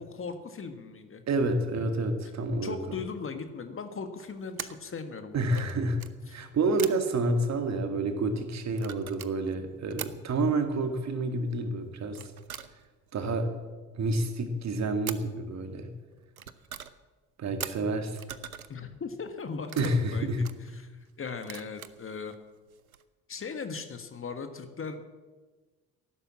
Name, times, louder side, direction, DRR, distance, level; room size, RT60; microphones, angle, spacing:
voice 1, 0.0-1.2 2.6-5.7 6.3-6.4 18.7-20.9 21.2-22.3 23.3-25.1, left 5 dB, 30° left, 8 dB, 1.6 m, -38 dB
voice 2, 1.3-3.0 5.3-6.0 6.3-12.3 13.1-13.5 13.9-15.9 17.4-18.2 19.8-20.4, right 2 dB, 40° right, 7 dB, 2.1 m, -29 dB
sound 1, 4.2-4.9 5.5-6.1 6.8-7.1 8.6-10.1 12.1-13.1 15.1-15.4 16.1-17.0 17.6-18.8 19.3-20.8 21.4-22.4 22.7-23.0, right 8 dB, 85° right, 0.6 m, -42 dB
14.5 x 11.5 x 7.3 m, 1.3 s
figure-of-eight pair, 50°, 42 cm